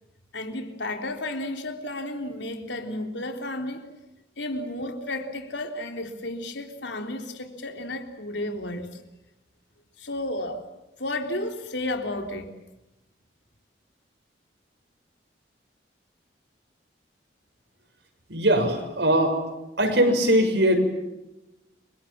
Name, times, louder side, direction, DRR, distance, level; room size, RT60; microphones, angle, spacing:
voice 1, 0.3-3.9 4.4-9.0 10.0-10.6 11.0-12.6, left 1 dB, 75° left, 5 dB, 3.7 m, -32 dB
voice 2, 18.3-19.4 19.8-20.7, right 1 dB, 70° right, 5 dB, 6.9 m, -21 dB
30.0 x 24.5 x 7.4 m, 0.97 s
head